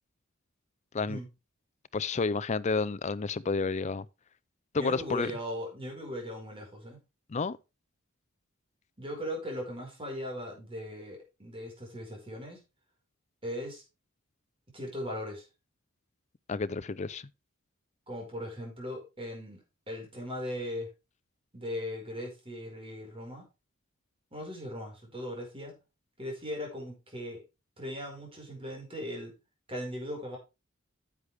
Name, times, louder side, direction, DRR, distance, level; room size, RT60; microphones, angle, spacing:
voice 1, 1.9-4.1 4.7-5.3 7.3-7.6 16.5-17.3, left 4 dB, 35° left, 0.5 m, -30 dB
voice 2, 4.8-7.0 9.0-12.6 13.4-13.8 14.7-15.4 18.1-20.9 21.5-23.4 24.3-25.8 26.2-27.4 27.8-29.3 29.7-30.4, equal, 25° right, 4.9 m, -38 dB
10.0 x 8.0 x 3.4 m
head